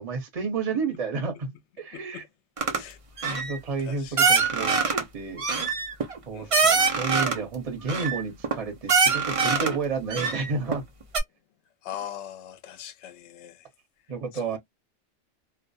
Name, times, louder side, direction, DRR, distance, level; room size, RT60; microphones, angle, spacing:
voice 1, 0.0-1.5 1.8-2.2 3.2-4.8 5.1-5.4 6.3-10.8 14.1-14.6, right 4 dB, 35° right, 0.7 m, -31 dB
voice 2, 1.9-2.3 2.7-3.5 3.8-4.2 6.3-6.7 11.8-13.6 14.3-14.6, left 10 dB, 70° left, 0.8 m, -41 dB
sound 1, 2.6-2.8 3.2-3.6 4.2-5.0 5.4-7.4 7.9-8.5 8.9-9.8 10.1-10.8 11.1-11.2, right 5 dB, 65° right, 0.3 m, -23 dB
2.4 x 2.1 x 2.6 m
omnidirectional pair, 1.3 m